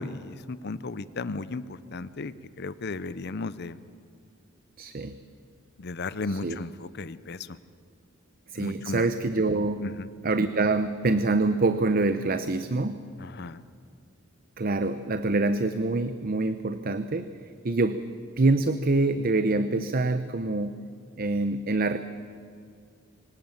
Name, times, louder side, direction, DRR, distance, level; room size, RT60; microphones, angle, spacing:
voice 1, 0.0-3.8 5.8-7.6 8.6-9.1 9.8-10.1 13.2-13.6, left 3 dB, 55° left, 15 dB, 0.7 m, -35 dB
voice 2, 4.8-5.2 6.3-6.6 8.5-9.8 10.2-13.0 14.6-17.3 17.6-18.0 18.4-20.7 21.2-22.0, right 2 dB, 45° right, 11 dB, 0.7 m, -25 dB
24.5 x 18.5 x 7.3 m, 2.3 s
head